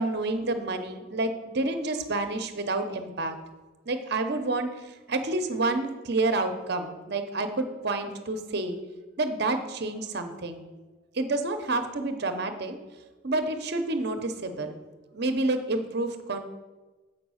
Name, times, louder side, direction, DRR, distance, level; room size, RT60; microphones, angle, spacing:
voice 1, 0.0-3.4 3.9-8.8 9.2-10.7 11.1-12.8 13.2-14.8 15.1-16.4, right 2 dB, 50° right, 7 dB, 0.8 m, -29 dB
7.5 x 5.3 x 6.3 m, 1.2 s
head